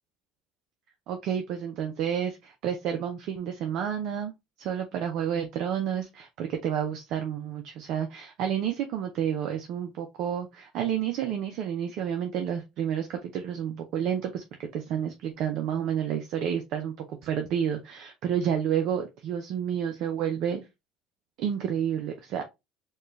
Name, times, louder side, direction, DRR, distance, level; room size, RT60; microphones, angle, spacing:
voice 1, 1.1-4.3 4.6-14.4 14.7-16.9 17.2-20.6 21.4-22.4, right 9 dB, 65° right, 5 dB, 0.6 m, -30 dB
4.3 x 2.3 x 3.1 m, 0.22 s
supercardioid pair, 80°, 0 cm